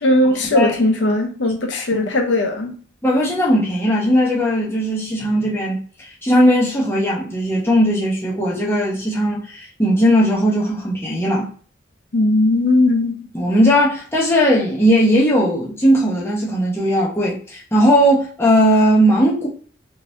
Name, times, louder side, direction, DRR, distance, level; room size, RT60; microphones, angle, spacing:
voice 1, 0.0-2.7 12.1-13.3, left 1 dB, 75° left, 0.7 m, -18 dB
voice 2, 3.0-11.5 13.3-19.5, equal, 10° left, 0.8 m, -17 dB
3.7 x 2.9 x 2.6 m
head